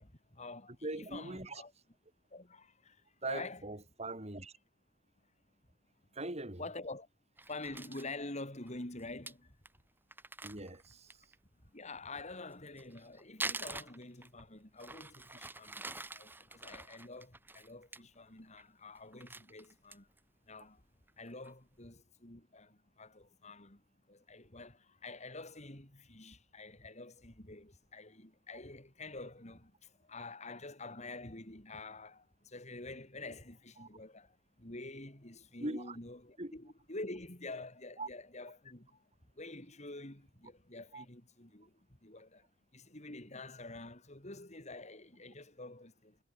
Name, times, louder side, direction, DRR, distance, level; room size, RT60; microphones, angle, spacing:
voice 1, 0.0-1.7 2.3-3.6 6.6-7.1 7.5-9.6 11.6-20.1 20.5-20.8 21.2-46.2, left 2 dB, 35° left, 4.5 m, -48 dB
voice 2, 0.8-1.6 3.2-4.5 6.1-6.6 10.4-11.2 33.8-33.9 35.6-36.0 36.4-36.5 38.0-38.1 40.9-41.0, right 2 dB, 35° right, 4.8 m, -41 dB
Crumpling crinkling, 7.4-8.1 8.7-8.8 9.0-9.1 9.3-9.4 9.7-9.8 10.1-11.4 12.5-14.4 14.8-18.0 18.4-18.7 19.0-20.2 20.6-20.7 21.1-21.5, right 2 dB, 10° right, 2.1 m, -45 dB
head